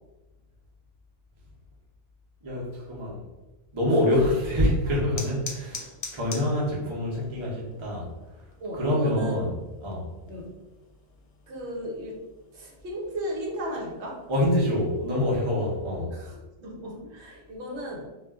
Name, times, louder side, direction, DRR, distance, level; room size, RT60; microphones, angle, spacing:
voice 1, 2.4-3.2 3.7-8.1 8.7-10.0 14.3-16.1, left 1 dB, 30° right, -4 dB, 0.6 m, -26 dB
sound 1, 4.1-15.3, left 4 dB, 75° left, 0.9 m, -46 dB
voice 2, 8.6-9.4 10.3-10.6 11.5-12.2 12.5-14.2 16.1-18.1, equal, 60° right, -2 dB, 1.0 m, -35 dB
2.4 x 2.1 x 3.4 m, 1.1 s
omnidirectional pair, 1.3 m